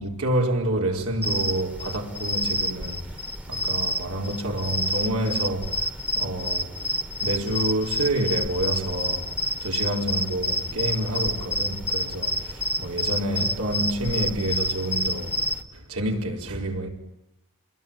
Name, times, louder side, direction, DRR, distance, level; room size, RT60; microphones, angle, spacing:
voice 1, 0.0-3.2 3.5-6.7 7.2-15.5 15.7-16.9, right 1 dB, 85° right, 4.8 m, -28 dB
sound 1, 1.2-15.6, equal, 5° right, 1.3 m, -29 dB
28.5 x 22.0 x 9.1 m
head